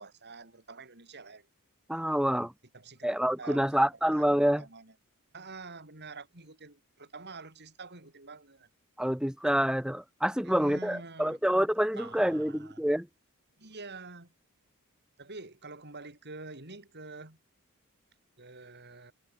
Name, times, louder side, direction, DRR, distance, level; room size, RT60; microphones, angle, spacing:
voice 1, 0.0-1.5 2.7-3.1 3.4-4.9 5.3-8.7 10.4-11.4 11.9-12.8 13.6-14.3 15.2-17.4 18.4-19.1, right 3 dB, 50° right, 6.7 m, -47 dB
voice 2, 1.9-2.5 3.0-4.6 9.0-13.1, equal, 5° right, 1.7 m, -27 dB
head